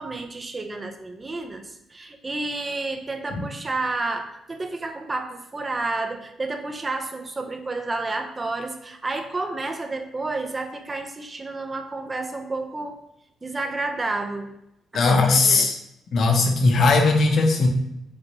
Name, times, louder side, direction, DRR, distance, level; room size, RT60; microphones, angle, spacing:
voice 1, 0.0-13.0 13.4-14.5 14.9-15.7, right 2 dB, 25° right, 5 dB, 0.6 m, -30 dB
voice 2, 14.9-15.7 16.1-17.7, left 3 dB, 60° left, 3 dB, 0.8 m, -18 dB
6.2 x 2.5 x 3.0 m, 0.82 s
cardioid pair, 90°, 0 cm